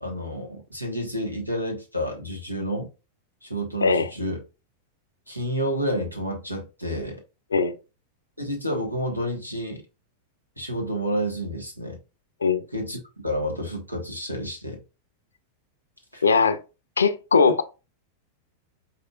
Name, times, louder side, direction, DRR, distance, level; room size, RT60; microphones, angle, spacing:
voice 1, 0.0-2.9 3.4-4.4 5.3-7.2 8.4-9.8 10.6-12.0 12.7-13.0 13.2-14.8 16.1-16.2, equal, 90° right, 1.3 m, -30 dB
voice 2, 16.2-16.6 17.0-17.6, left 5 dB, 75° left, 0.5 m, -20 dB
5.0 x 4.3 x 2.4 m
figure-of-eight pair, 90°, 0 cm